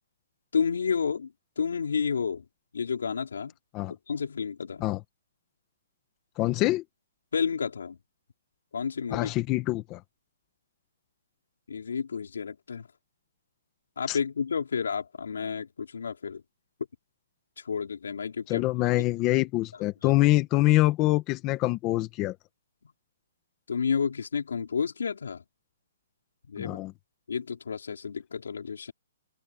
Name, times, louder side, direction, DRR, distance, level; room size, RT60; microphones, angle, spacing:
voice 1, 0.5-2.4 2.7-3.5 3.9-4.8 7.3-8.0 8.7-9.3 11.7-12.9 14.0-16.4 17.6-18.6 23.7-25.4 26.5-26.8 27.3-28.9, left 6 dB, 80° left, 5.0 m, -30 dB
voice 2, 6.4-6.8 9.1-10.0 14.1-14.2 18.5-22.3 26.6-26.9, left 18 dB, 20° left, 1.3 m, -25 dB
open air
hypercardioid pair, 170°, 0 cm